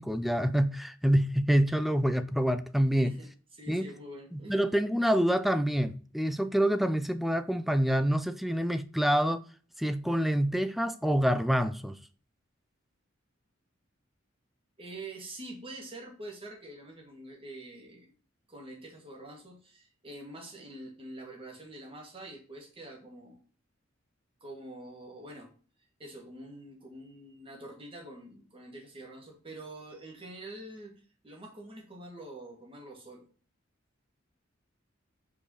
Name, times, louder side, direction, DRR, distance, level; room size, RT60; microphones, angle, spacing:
voice 1, 0.0-3.1 3.7-3.9 4.3-9.4 9.8-12.0, equal, ahead, 0.4 m, -27 dB
voice 2, 2.9-4.5 14.8-18.1 18.5-23.4 24.4-25.5 26.0-33.3, right 1 dB, 25° right, 2.2 m, -46 dB
5.0 x 4.8 x 4.9 m
head